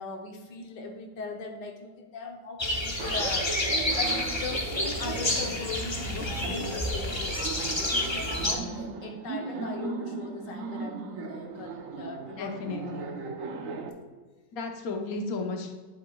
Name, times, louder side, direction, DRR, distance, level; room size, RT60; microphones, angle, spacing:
voice 1, 0.0-12.7, left 4 dB, 90° left, 3 dB, 1.6 m, -40 dB
sound 1, 2.6-8.5, left 1 dB, 25° left, 0.7 m, -29 dB
Laughter, 3.0-13.9, right 4 dB, 55° right, 1.2 m, -37 dB
voice 2, 12.2-13.1 14.5-15.7, left 3 dB, 60° left, 3 dB, 1.4 m, -34 dB
10.5 x 8.1 x 2.3 m, 1.4 s
omnidirectional pair, 1.9 m